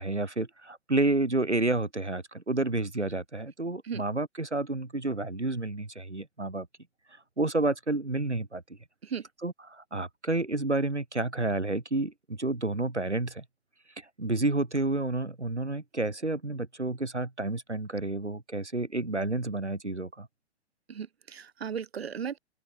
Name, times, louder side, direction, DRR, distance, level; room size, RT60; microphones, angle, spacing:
voice 1, 0.0-6.7 7.4-8.6 9.4-13.4 14.0-20.3, right 2 dB, 85° right, 5.8 m, -30 dB
voice 2, 20.9-22.4, right 7 dB, 65° right, 5.9 m, -36 dB
open air
figure-of-eight pair, 115°, 34 cm